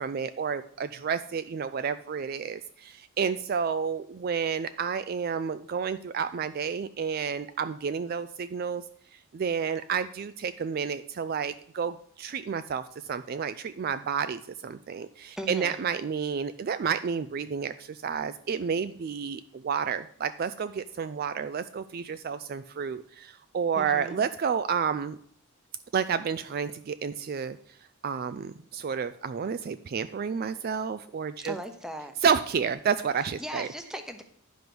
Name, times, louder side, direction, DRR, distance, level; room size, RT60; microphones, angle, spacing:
voice 1, 0.0-8.8 9.3-25.2 25.9-27.6 28.0-31.5 32.2-33.7, right 6 dB, 45° right, 12 dB, 0.3 m, -30 dB
voice 2, 15.4-15.8 23.7-24.2 31.4-32.2 33.4-34.2, equal, 5° right, 7 dB, 0.8 m, -38 dB
10.5 x 5.2 x 6.0 m, 0.63 s
head